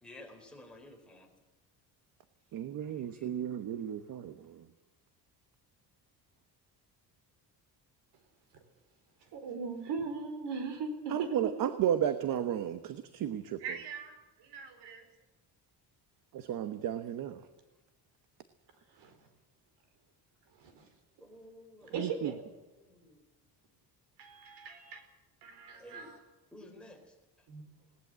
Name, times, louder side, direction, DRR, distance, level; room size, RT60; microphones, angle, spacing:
voice 1, 0.0-1.3 3.1-3.2 21.2-21.9 22.9-23.2 25.8-26.1 26.5-27.0, left 1 dB, ahead, 1 dB, 3.9 m, -52 dB
voice 2, 2.5-4.7 11.1-13.6 16.3-17.4 21.9-22.3, right 10 dB, 55° right, 10 dB, 1.2 m, -33 dB
voice 3, 9.3-11.3 13.6-15.1 18.9-19.1 20.6-20.9 21.8-22.4 24.2-25.0 25.4-26.2 27.5-27.6, right 5 dB, 90° right, 8 dB, 4.7 m, -40 dB
20.5 x 18.5 x 7.6 m, 1.1 s
cardioid pair, 175°, 40 cm